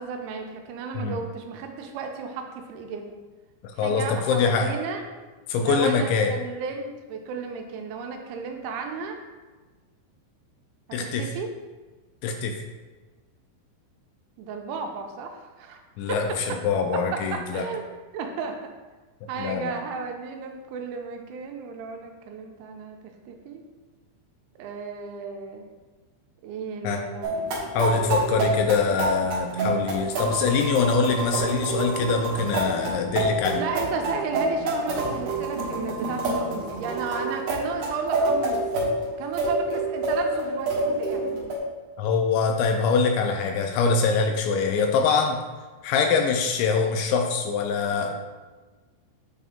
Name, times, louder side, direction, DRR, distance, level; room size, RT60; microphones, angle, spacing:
voice 1, 0.0-3.1 3.8-5.0 5.6-9.2 10.9-11.5 14.4-15.8 16.1-16.4 16.9-17.9 18.1-18.6 19.3-23.0 23.3-23.6 24.6-25.7 26.4-28.2 33.5-38.6 39.2-41.4, right 5 dB, 85° right, 4 dB, 3.0 m, -34 dB
voice 2, 3.8-4.7 5.5-6.3 10.9-11.3 12.2-12.5 16.0-17.7 19.4-19.7 26.8-27.0 27.7-33.6 42.0-45.4 45.8-48.1, left 5 dB, 85° left, 4 dB, 2.7 m, -24 dB
sound 1, 27.2-41.6, right 2 dB, 65° right, 2.3 m, -27 dB
8.3 x 3.6 x 3.6 m, 1.3 s
omnidirectional pair, 5.5 m